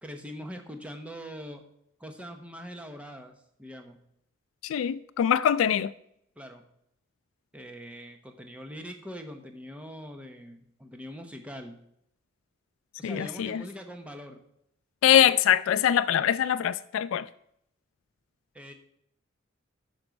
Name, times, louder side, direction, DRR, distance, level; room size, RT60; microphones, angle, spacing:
voice 1, 0.0-1.6 2.0-3.3 3.6-4.0 6.4-6.6 7.5-11.8 13.0-14.4 18.5-18.7, equal, 5° right, 0.9 m, -42 dB
voice 2, 4.6-5.9 13.0-13.6 15.0-17.3, left 10 dB, 85° left, 0.3 m, -23 dB
10.5 x 6.2 x 5.2 m
head